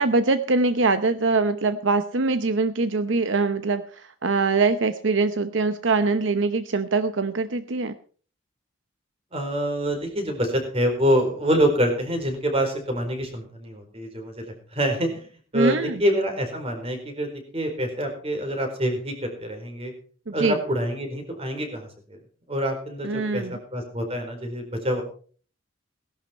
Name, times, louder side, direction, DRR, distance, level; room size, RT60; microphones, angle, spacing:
voice 1, 0.0-7.9 15.5-16.0 20.3-20.6 23.0-23.6, right 3 dB, 70° right, 11 dB, 0.8 m, -23 dB
voice 2, 9.3-15.2 15.5-19.9 20.3-22.2 22.5-23.4 23.7-25.0, equal, 30° right, 4 dB, 4.4 m, -26 dB
18.0 x 11.5 x 4.5 m, 0.43 s
head